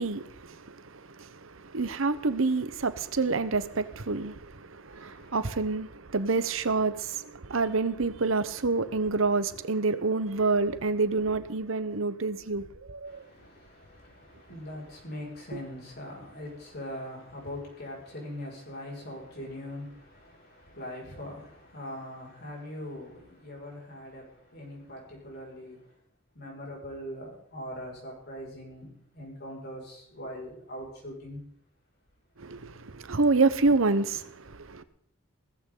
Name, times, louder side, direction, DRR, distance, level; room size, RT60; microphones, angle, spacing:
voice 1, 0.0-13.2 15.5-15.6 32.4-34.8, right 3 dB, 75° right, 1.0 m, -28 dB
voice 2, 4.9-5.6 13.0-25.9 26.3-31.4, left 1 dB, 50° left, 6.1 m, -42 dB
17.0 x 15.0 x 3.9 m
head